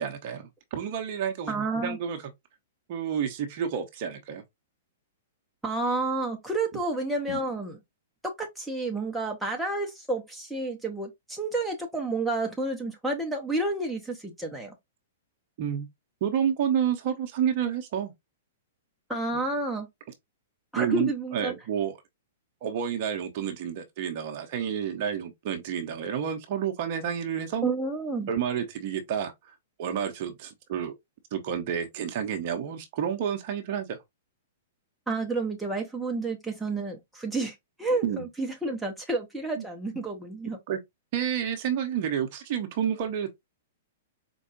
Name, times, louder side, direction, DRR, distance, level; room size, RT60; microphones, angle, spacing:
voice 1, 0.0-2.2 2.9-4.4 7.3-7.4 15.6-15.9 16.2-18.1 20.8-22.0 22.6-27.6 28.3-29.3 29.8-30.9 31.3-34.0 38.0-38.3 39.6-39.7 40.7-40.8 41.1-43.3, right 8 dB, 40° right, 0.8 m, -30 dB
voice 2, 1.5-2.0 5.6-7.8 8.2-14.7 19.1-19.9 20.7-21.5 27.6-28.3 35.1-40.6, right 2 dB, 5° right, 0.8 m, -30 dB
4.5 x 2.3 x 2.8 m
figure-of-eight pair, 105°, 0 cm